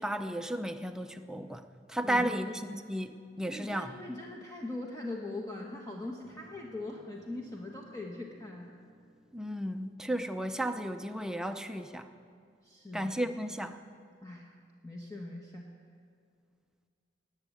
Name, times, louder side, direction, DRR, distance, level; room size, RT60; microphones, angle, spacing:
voice 1, 0.0-3.9 9.3-12.1 12.9-13.8, right 1 dB, 5° right, 7 dB, 0.6 m, -34 dB
voice 2, 2.0-2.4 3.4-8.7 12.6-13.3 14.2-14.5 14.8-15.7, left 2 dB, 20° left, -1 dB, 1.1 m, -41 dB
sound 1, 6.2-12.1, left 1 dB, 35° left, 3.7 m, -59 dB
19.0 x 7.2 x 9.1 m, 2.2 s
head